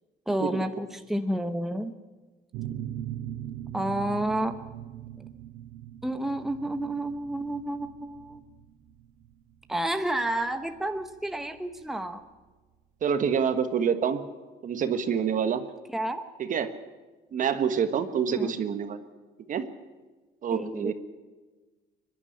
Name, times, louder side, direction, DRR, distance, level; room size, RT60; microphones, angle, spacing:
voice 1, 0.3-1.9 3.7-4.6 6.0-8.4 9.7-12.2 15.9-16.2 18.3-18.6 20.5-20.9, right 1 dB, ahead, 7 dB, 1.1 m, -30 dB
sound 1, 2.5-11.9, right 11 dB, 85° right, 1.2 m, -40 dB
voice 2, 13.0-14.2 14.6-15.6 16.4-16.7 17.3-19.0 19.5-19.6 20.4-20.9, right 7 dB, 50° right, 10 dB, 1.5 m, -27 dB
23.5 x 11.0 x 9.9 m, 1.3 s
cardioid pair, 110°, 17 cm